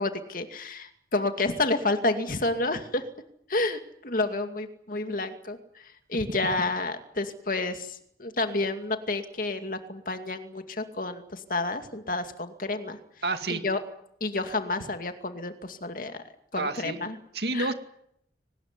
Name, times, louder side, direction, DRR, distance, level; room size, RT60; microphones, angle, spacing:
voice 1, 0.0-3.0 3.5-13.0 13.5-13.8 14.2-16.2 16.5-17.2 17.5-17.7, left 2 dB, 50° left, 7 dB, 2.4 m, -30 dB
voice 2, 13.2-13.6 16.6-17.0 17.3-17.7, right 3 dB, 65° right, 8 dB, 2.3 m, -29 dB
23.5 x 19.5 x 9.8 m, 0.73 s
head